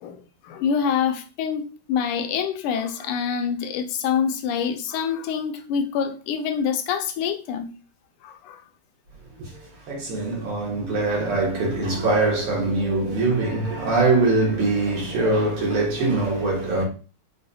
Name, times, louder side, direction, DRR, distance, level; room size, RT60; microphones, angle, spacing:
voice 1, 0.0-7.7 8.2-8.6, left 7 dB, 90° left, 1.5 m, -26 dB
voice 2, 9.4-16.8, right 3 dB, 80° right, 2.1 m, -23 dB
4.8 x 2.3 x 2.6 m
omnidirectional pair, 2.4 m